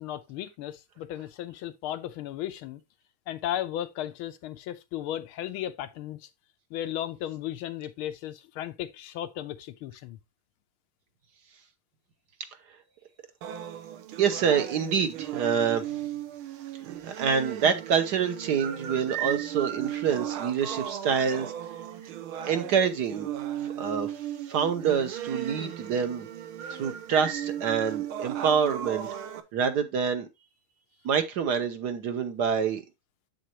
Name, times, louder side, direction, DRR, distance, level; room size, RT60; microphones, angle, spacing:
voice 1, 0.0-2.8 3.3-6.3 6.7-10.2, left 12 dB, 90° left, 1.6 m, -35 dB
sound 1, 13.4-29.4, right 11 dB, 85° right, 1.7 m, -36 dB
voice 2, 14.2-16.0 17.0-21.5 22.4-23.3 23.8-26.3 26.7-29.1 29.5-30.3 31.0-32.8, right 7 dB, 60° right, 1.3 m, -26 dB
7.7 x 6.4 x 2.9 m
omnidirectional pair, 2.3 m